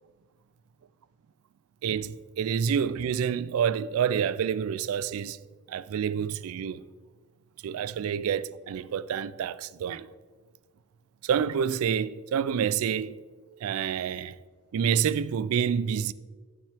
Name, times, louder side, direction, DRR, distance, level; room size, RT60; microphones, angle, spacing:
voice 1, 1.8-5.4 5.7-6.8 7.6-10.1 11.2-13.2 13.6-14.4 14.7-16.1, right 8 dB, 85° right, 0.3 m, -28 dB
12.0 x 5.7 x 3.4 m
head